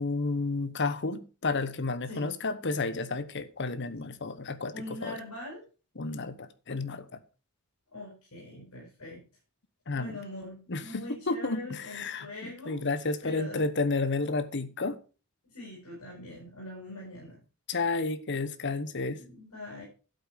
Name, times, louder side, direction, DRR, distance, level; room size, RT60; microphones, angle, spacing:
voice 1, 0.0-5.1 6.0-7.2 9.9-10.2 10.7-15.0 17.7-19.2, left 3 dB, 55° left, 1.0 m, -31 dB
voice 2, 4.7-5.6 7.9-9.2 9.9-12.8 13.2-13.7 15.5-17.4 19.2-19.8, left 1 dB, 80° left, 6.5 m, -43 dB
12.0 x 8.3 x 5.1 m
head